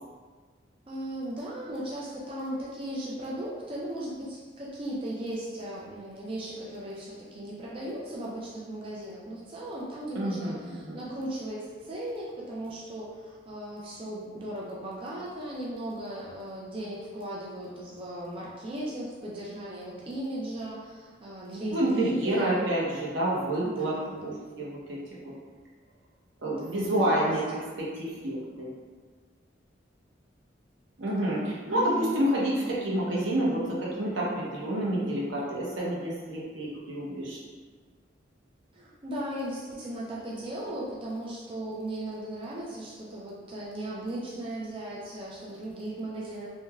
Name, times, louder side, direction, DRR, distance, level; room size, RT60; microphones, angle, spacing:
voice 1, 0.9-22.7 23.6-24.4 26.4-27.1 31.7-32.2 38.7-46.5, right 1 dB, 30° right, -5 dB, 0.3 m, -37 dB
voice 2, 10.1-11.0 21.7-23.9 24.2-25.3 26.4-27.4 27.8-28.7 31.0-37.4, right 1 dB, 85° right, -5 dB, 0.7 m, -29 dB
3.1 x 2.1 x 2.3 m, 1.5 s
head